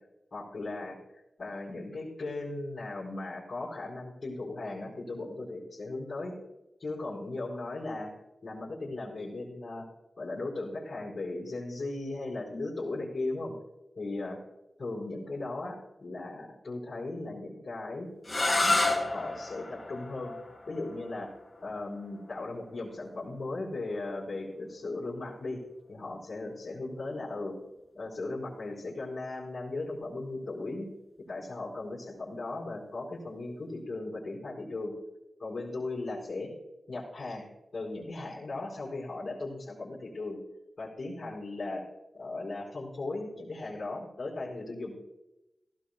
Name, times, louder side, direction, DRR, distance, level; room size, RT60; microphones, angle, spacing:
voice 1, 0.3-1.0 1.4-6.3 6.8-8.1 8.4-9.9 10.2-13.5 13.9-14.4 14.8-18.1 18.4-18.8 19.1-20.3 20.7-21.3 21.6-25.6 25.9-27.5 27.9-30.9 31.3-34.9 35.4-36.5 36.9-37.5 37.7-40.4 40.8-41.8 42.1-45.0, left 2 dB, 65° left, -7 dB, 4.8 m, -37 dB
sound 1, 18.2-24.0, left 2 dB, 30° left, 3.1 m, -32 dB
17.0 x 16.5 x 2.3 m, 0.95 s
wide cardioid pair, 75°, 0 cm